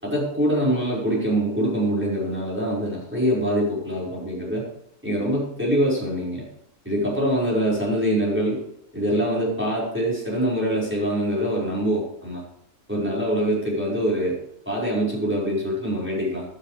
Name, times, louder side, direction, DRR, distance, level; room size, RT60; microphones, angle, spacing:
voice 1, 0.0-4.6 5.0-6.4 6.9-8.6 8.9-12.4 12.9-14.4 14.7-16.4, equal, 10° right, -6 dB, 5.5 m, -24 dB
15.0 x 12.5 x 3.5 m, 0.74 s
omnidirectional pair, 1.3 m